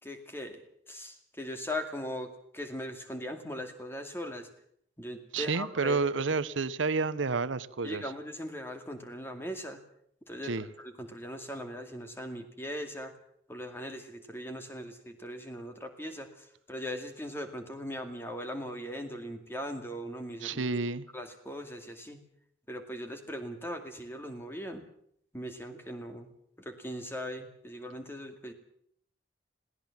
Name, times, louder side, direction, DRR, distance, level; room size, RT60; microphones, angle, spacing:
voice 1, 0.0-4.5 5.0-6.0 7.8-9.8 10.3-13.2 13.5-20.8 21.1-22.2 22.7-24.8 25.3-26.3 26.6-28.5, equal, 10° left, 6 dB, 2.2 m, -39 dB
voice 2, 5.3-8.0 10.4-10.7 20.4-21.1, right 4 dB, 90° right, 15 dB, 0.8 m, -30 dB
21.5 x 17.0 x 7.3 m, 0.67 s
head